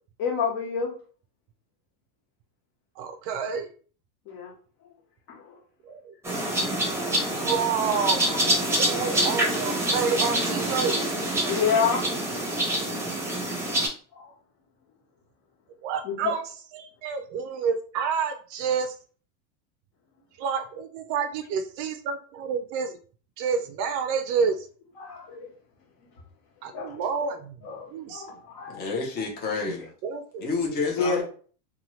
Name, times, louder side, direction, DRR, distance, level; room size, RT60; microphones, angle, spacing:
voice 1, 0.2-0.9 4.2-4.5 5.3-5.6 8.3-8.4 11.5-12.1 14.1-14.3 16.0-16.3 25.0-25.5 26.7-27.3 27.6-28.8 31.0-31.2, left 6 dB, 50° left, 0 dB, 1.4 m, -28 dB
voice 2, 3.0-3.7 5.9-6.1 7.3-8.2 8.8-11.0 15.8-16.4 16.7-18.9 20.4-23.0 23.4-24.7 26.6-28.2 30.0-30.5, right 6 dB, 45° right, 7 dB, 0.4 m, -29 dB
sound 1, 6.2-13.9, right 1 dB, 5° right, 0.9 m, -26 dB
voice 3, 28.7-29.9 30.4-31.2, left 4 dB, 20° left, 0 dB, 0.6 m, -29 dB
2.7 x 2.3 x 3.0 m, 0.41 s
supercardioid pair, 120°, 43 cm